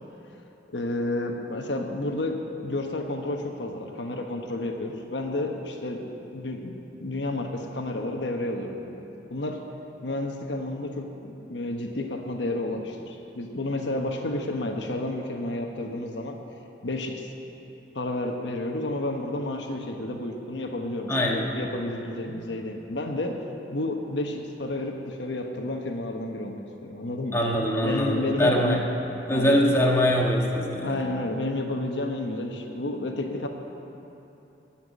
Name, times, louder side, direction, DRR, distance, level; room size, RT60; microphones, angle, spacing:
voice 1, 0.7-6.7 7.0-8.9 9.3-9.7 10.0-16.4 16.8-17.3 17.9-23.4 23.7-27.4 27.8-28.9 29.3-29.7 30.7-33.5, left 1 dB, 80° left, 3 dB, 1.1 m, -31 dB
voice 2, 21.1-21.5 27.3-28.8 29.3-31.1, left 1 dB, 15° left, -2 dB, 1.4 m, -23 dB
17.5 x 5.9 x 8.3 m, 3.0 s
head